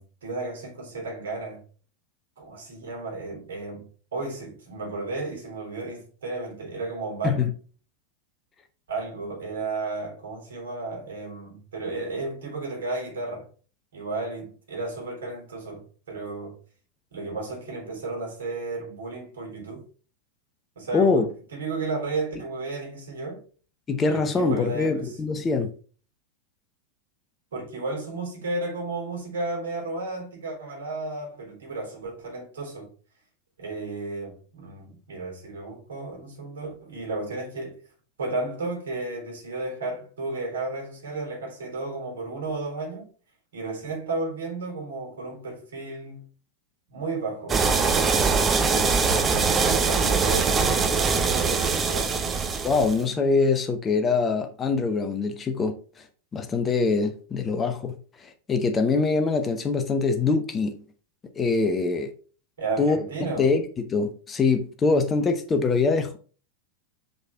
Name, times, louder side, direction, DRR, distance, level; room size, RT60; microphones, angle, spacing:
voice 1, 0.0-1.6 2.4-7.4 8.9-13.5 13.9-16.6 17.1-19.8 20.8-23.4 24.1-25.2 27.5-32.9 33.6-37.8 38.2-43.1 43.5-46.3 46.9-47.6 48.0-48.8 49.3-52.4 62.6-63.5, right 3 dB, 60° right, 3.6 m, -33 dB
voice 2, 20.9-21.3 23.9-25.7 52.6-55.7 56.3-57.9 58.2-60.7 61.4-62.1 62.8-63.0 63.4-66.2, left 4 dB, 20° left, 0.8 m, -23 dB
sound 1, 47.5-53.0, right 5 dB, 20° right, 0.8 m, -22 dB
6.0 x 5.3 x 3.4 m
figure-of-eight pair, 90°, 0 cm